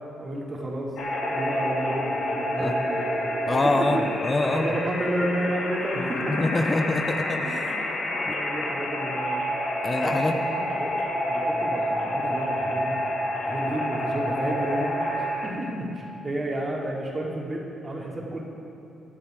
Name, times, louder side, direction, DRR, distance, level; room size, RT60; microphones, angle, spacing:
voice 1, 0.2-0.9 1.3-3.1 3.6-4.0 4.4-6.8 7.4-7.7 8.0-9.4 10.0-10.9 11.3-13.0 13.4-18.4, right 1 dB, 35° right, -2 dB, 3.3 m, -31 dB
sound 1, 1.0-15.5, equal, 75° left, 3.3 m, -28 dB
voice 2, 3.5-4.7 6.0-7.6 8.3-8.4 9.8-10.4, left 2 dB, 30° left, 6 dB, 0.9 m, -25 dB
23.0 x 8.0 x 4.8 m, 2.9 s
supercardioid pair, 60°, 0 cm